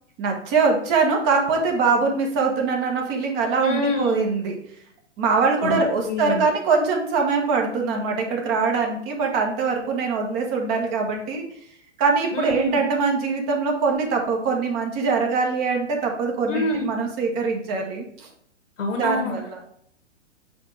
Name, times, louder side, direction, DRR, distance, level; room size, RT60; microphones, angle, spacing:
voice 1, 0.2-4.5 5.2-11.4 12.0-18.3 18.9-19.6, right 4 dB, 35° right, 1 dB, 1.6 m, -23 dB
voice 2, 3.6-4.2 5.6-6.4 12.3-12.8 16.5-16.9 18.8-19.4, left 2 dB, 80° left, 5 dB, 1.8 m, -26 dB
5.2 x 4.6 x 4.8 m, 0.69 s
hypercardioid pair, 120°, 37 cm